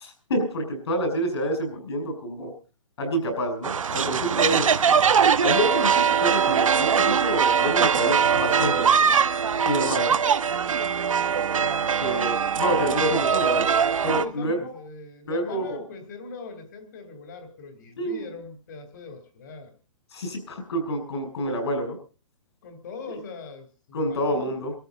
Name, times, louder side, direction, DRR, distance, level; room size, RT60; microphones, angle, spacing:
voice 1, 0.0-2.5 3.0-4.9 5.4-9.1 9.6-10.2 12.0-13.7 14.0-14.6 15.3-15.8 18.0-18.2 20.1-22.0 23.9-24.7, equal, 55° left, 5 dB, 6.2 m, -28 dB
sound 1, 3.6-14.2, right 7 dB, 90° right, 1.2 m, -22 dB
voice 2, 11.6-11.9 14.2-19.7 22.6-24.8, left 4 dB, 35° left, 7 dB, 3.1 m, -41 dB
24.5 x 13.5 x 3.9 m, 0.34 s
hypercardioid pair, 170°, 17 cm